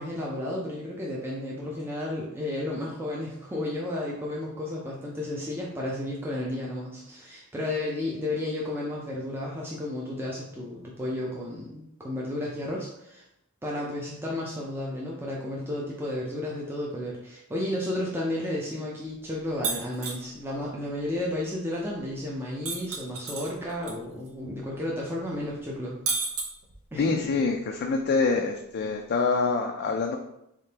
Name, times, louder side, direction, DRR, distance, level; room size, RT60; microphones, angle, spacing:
voice 1, 0.0-13.3 13.6-26.0 26.9-27.3, left 1 dB, 10° right, -4 dB, 0.5 m, -32 dB
sound 1, 19.6-20.2 22.6-23.9 24.3-24.4 26.1-27.0, right 4 dB, 70° right, 0.8 m, -30 dB
voice 2, 27.0-30.2, left 4 dB, 45° left, 3 dB, 0.3 m, -26 dB
3.6 x 3.6 x 2.8 m, 0.81 s
head